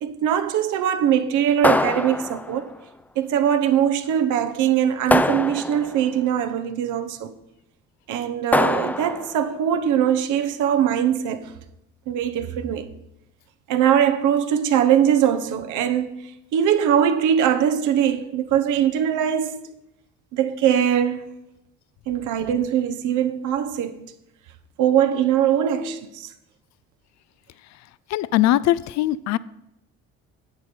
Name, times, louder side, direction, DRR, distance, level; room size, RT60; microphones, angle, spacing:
voice 1, 0.0-2.7 3.2-7.3 8.1-11.5 12.1-12.9 13.7-16.1 16.5-19.6 20.3-21.2 22.1-24.0 24.8-26.3, right 9 dB, 70° right, 0.9 m, -21 dB
sound 1, 1.6-2.7 5.1-6.1 8.5-9.4, left 2 dB, 5° left, 0.4 m, -22 dB
voice 2, 28.1-29.4, left 14 dB, 60° left, 0.5 m, -20 dB
10.5 x 7.7 x 4.4 m
supercardioid pair, 80°, 31 cm